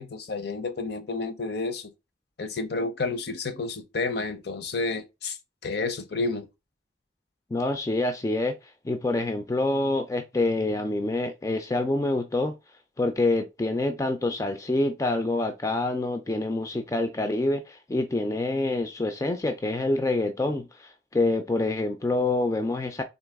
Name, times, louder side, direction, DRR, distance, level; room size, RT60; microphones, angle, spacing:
voice 1, 0.0-1.9 2.4-5.4 5.6-6.5, left 3 dB, 55° left, 0.6 m, -30 dB
voice 2, 7.5-8.6 8.8-12.5 13.0-23.0, left 2 dB, 15° left, 0.3 m, -26 dB
3.9 x 2.8 x 3.4 m
head